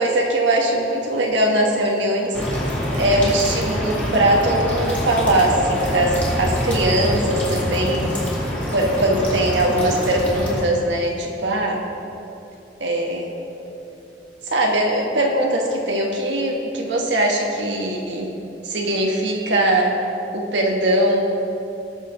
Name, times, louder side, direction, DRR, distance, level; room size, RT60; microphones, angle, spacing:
voice 1, 0.0-2.4 2.9-8.1 8.7-11.8 12.8-13.3 14.4-18.3 18.6-20.0 20.3-21.3, right 1 dB, 65° right, 0 dB, 1.3 m, -20 dB
sound 1, 2.3-10.6, equal, 10° left, 2.3 m, -25 dB
19.5 x 6.6 x 3.8 m, 2.9 s
head